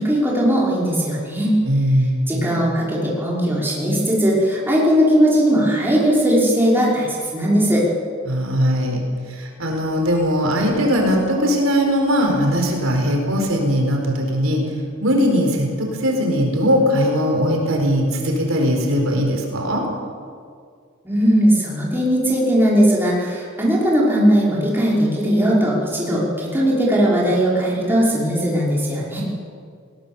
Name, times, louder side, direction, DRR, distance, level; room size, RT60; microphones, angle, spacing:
voice 1, 0.0-1.5 2.3-7.8 21.0-29.2, equal, 10° right, -5 dB, 5.4 m, -18 dB
voice 2, 1.6-2.3 8.3-9.0 9.3-14.6 15.0-19.8, equal, 80° right, 1 dB, 4.5 m, -19 dB
21.0 x 18.5 x 7.2 m, 2.1 s
head